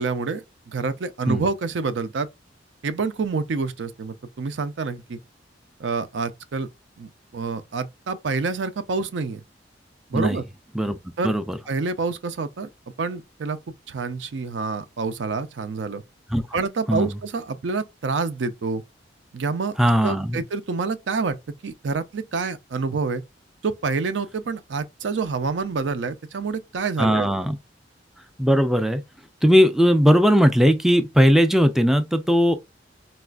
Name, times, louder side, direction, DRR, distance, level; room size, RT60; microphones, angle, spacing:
voice 1, 0.0-2.3 2.8-5.2 5.8-6.7 7.0-9.4 10.1-10.4 11.2-11.3 11.7-12.7 13.0-13.6 13.9-16.0 16.5-18.8 19.3-19.8 20.0-21.4 21.6-23.2 23.6-27.3, right 4 dB, 70° right, 0.5 m, -27 dB
voice 2, 11.2-11.6 16.3-16.4 16.9-17.1 19.8-20.4 27.0-27.6 28.4-29.0 29.4-32.5, equal, ahead, 0.3 m, -18 dB
4.1 x 2.4 x 2.3 m
head